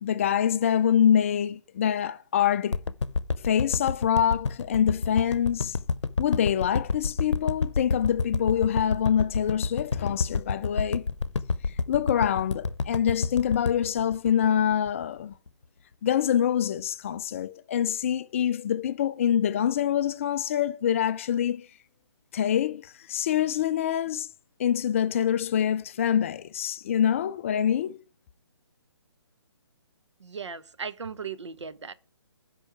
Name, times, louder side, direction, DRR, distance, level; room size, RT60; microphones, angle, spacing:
voice 1, 0.0-2.8 3.4-5.8 6.2-11.1 11.9-15.3 16.0-21.7 22.3-24.3 24.6-28.0, left 9 dB, 30° left, 0.3 m, -25 dB
sound 1, 2.7-15.0 15.5-15.6, left 4 dB, 90° left, 0.7 m, -28 dB
voice 2, 30.2-31.9, right 5 dB, 80° right, 0.9 m, -37 dB
12.5 x 5.4 x 4.6 m
hypercardioid pair, 150°, 15 cm